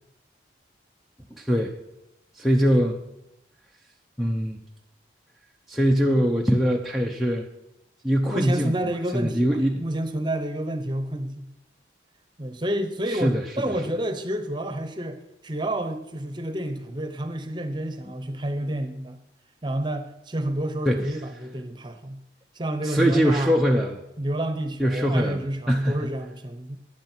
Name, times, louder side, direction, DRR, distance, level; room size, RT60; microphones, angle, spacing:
voice 1, 1.3-1.7 2.4-3.0 4.2-4.6 5.7-7.5 8.0-9.8 13.1-13.7 20.9-21.1 22.8-24.0 24.8-25.4 25.7-26.1, equal, ahead, -2 dB, 0.6 m, -22 dB
voice 2, 8.3-11.5 12.4-19.2 19.6-22.2 22.5-23.6 24.2-26.8, right 1 dB, 25° right, 8 dB, 0.9 m, -29 dB
13.5 x 9.5 x 4.5 m, 0.89 s
head